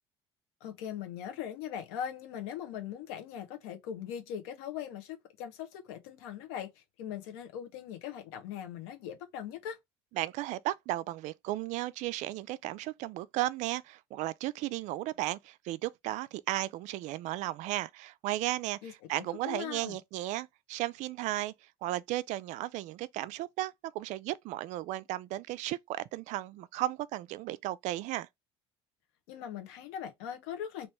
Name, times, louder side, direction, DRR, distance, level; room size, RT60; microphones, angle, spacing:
voice 1, 0.6-9.8 18.8-20.0 29.3-30.9, left 9 dB, 90° left, 1.1 m, -40 dB
voice 2, 10.2-21.5 21.8-28.3, right 16 dB, 70° right, 0.4 m, -35 dB
3.0 x 2.9 x 3.4 m
supercardioid pair, 90°, 13 cm